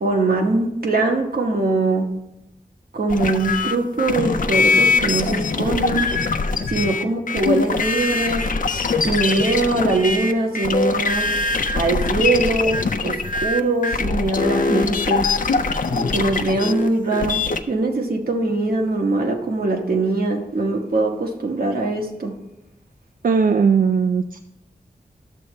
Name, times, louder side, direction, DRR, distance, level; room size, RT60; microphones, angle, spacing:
voice 1, 0.0-2.1 2.9-6.1 6.7-8.4 9.0-11.3 11.7-15.3 15.9-17.4 17.7-22.3, right 2 dB, 80° right, 2 dB, 1.1 m, -22 dB
sound 1, 3.1-17.6, left 4 dB, 60° left, 0.5 m, -22 dB
voice 2, 23.2-24.4, right 5 dB, 60° right, 7 dB, 0.4 m, -18 dB
11.5 x 7.0 x 3.2 m, 0.93 s
wide cardioid pair, 80°, 15 cm